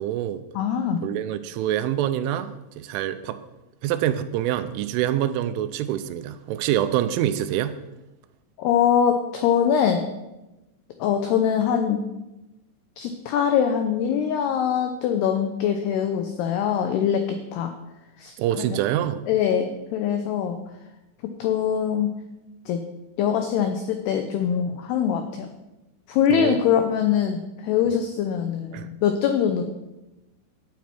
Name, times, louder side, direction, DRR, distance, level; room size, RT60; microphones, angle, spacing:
voice 1, 0.0-0.4 1.0-3.4 3.8-7.8 18.4-19.2 26.3-26.6 28.7-28.9, right 11 dB, 90° right, 10 dB, 3.1 m, -26 dB
voice 2, 0.5-1.0 8.6-10.0 11.0-12.0 13.0-17.7 18.2-18.8 19.3-20.6 21.4-22.1 22.7-22.8 23.2-25.5 26.1-29.6, left 8 dB, 85° left, 6 dB, 2.3 m, -23 dB
11.5 x 9.2 x 4.4 m, 0.99 s
omnidirectional pair, 5.5 m